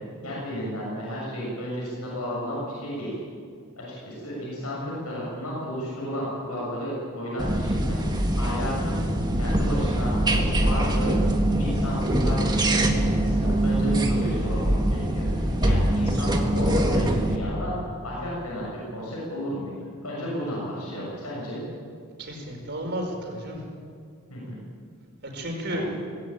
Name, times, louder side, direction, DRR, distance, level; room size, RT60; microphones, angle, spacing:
voice 1, 0.2-3.1 3.8-9.0 9.4-11.2 11.6-17.7 18.0-19.7 20.0-21.6 24.3-24.5 25.7-25.9, equal, 80° left, -6 dB, 7.1 m, -33 dB
sound 1, 7.4-17.4, right 1 dB, 20° right, 1.7 m, -23 dB
voice 2, 22.2-23.6 25.2-25.9, right 1 dB, 50° right, 1 dB, 5.0 m, -32 dB
19.5 x 16.0 x 9.1 m, 2.2 s
head